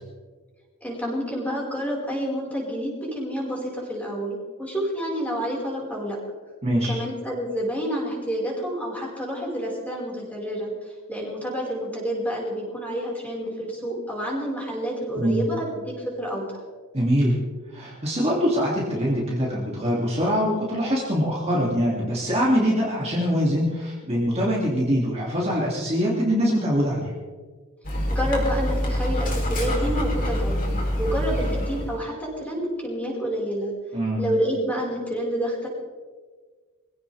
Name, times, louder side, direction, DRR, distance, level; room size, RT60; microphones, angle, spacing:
voice 1, 0.8-6.2 6.7-10.7 11.1-16.6 28.1-33.7 34.2-35.7, equal, 5° left, -4 dB, 5.2 m, -29 dB
voice 2, 6.6-6.9 15.2-15.5 16.9-17.4 17.7-27.2 33.9-34.3, equal, 30° right, -5 dB, 2.7 m, -23 dB
Dog, 27.8-32.0, equal, 40° left, 3.7 m, -25 dB
23.5 x 16.5 x 3.5 m, 1.5 s
head